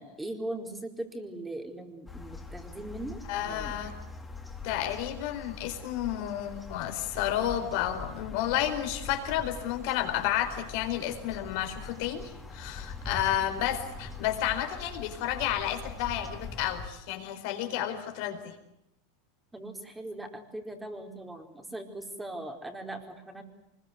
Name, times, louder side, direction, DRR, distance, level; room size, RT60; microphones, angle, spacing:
voice 1, 0.0-3.9 19.5-23.4, right 1 dB, 10° right, 4 dB, 4.5 m, -40 dB
sound 1, 2.1-16.9, left 3 dB, 10° left, 4.1 m, -43 dB
voice 2, 3.3-3.9 4.6-18.6, left 11 dB, 60° left, 7 dB, 4.5 m, -31 dB
25.0 x 21.5 x 9.6 m, 0.83 s
hypercardioid pair, 95°, 0 cm